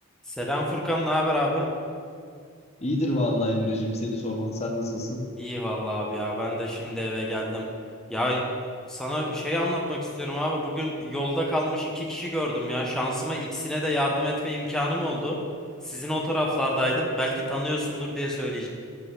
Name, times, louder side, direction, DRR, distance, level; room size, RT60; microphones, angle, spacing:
voice 1, 0.3-1.7 5.4-7.7 8.1-8.5 8.9-15.4 15.8-18.7, equal, 5° left, -3 dB, 0.8 m, -27 dB
voice 2, 2.8-5.2, left 1 dB, 30° left, 1 dB, 0.8 m, -27 dB
7.9 x 3.9 x 6.3 m, 2.2 s
head